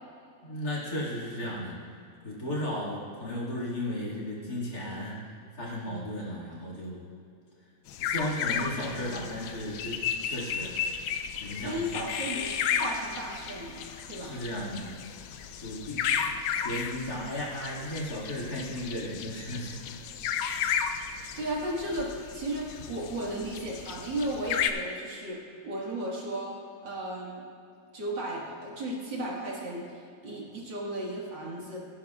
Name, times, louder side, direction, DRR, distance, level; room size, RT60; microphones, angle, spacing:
voice 1, 0.4-1.8 2.2-7.0 8.0-10.7 11.4-12.0 14.2-14.9 15.6-16.3 16.6-20.0, left 1 dB, 50° left, -5 dB, 2.6 m, -35 dB
sound 1, 7.9-24.7, left 8 dB, 85° left, 1.5 m, -34 dB
voice 2, 11.6-14.3 21.4-25.4 25.6-26.5 26.8-27.4 27.9-31.8, right 1 dB, 65° right, -4 dB, 2.5 m, -35 dB
17.0 x 10.0 x 2.4 m, 2.5 s
omnidirectional pair, 2.2 m